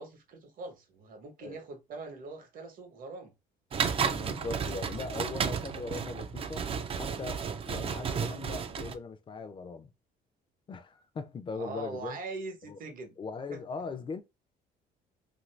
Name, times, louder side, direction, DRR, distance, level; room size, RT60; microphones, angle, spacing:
voice 1, 0.0-3.3 7.4-7.6 11.5-13.1 13.5-13.6, right 3 dB, 55° right, 0.9 m, -42 dB
sound 1, 3.7-8.9, right 6 dB, 35° right, 0.4 m, -33 dB
voice 2, 4.0-6.7 7.0-9.9 10.7-12.2 12.6-12.8 13.2-14.2, left 4 dB, 30° left, 0.5 m, -40 dB
2.7 x 2.6 x 3.2 m
cardioid pair, 110°, 17 cm